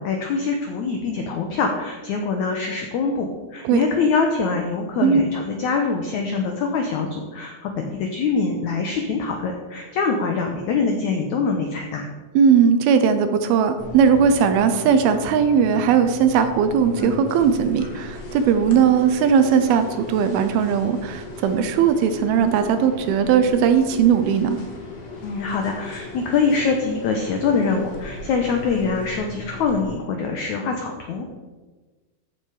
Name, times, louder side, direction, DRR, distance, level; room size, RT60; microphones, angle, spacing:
voice 1, 0.0-12.1 25.2-31.3, left 4 dB, 90° left, 3 dB, 1.6 m, -24 dB
voice 2, 12.4-24.6, right 7 dB, 80° right, 8 dB, 2.5 m, -18 dB
sound 1, 13.8-29.8, left 2 dB, 55° left, 1.1 m, -37 dB
14.0 x 5.9 x 4.9 m, 1.3 s
omnidirectional pair, 4.6 m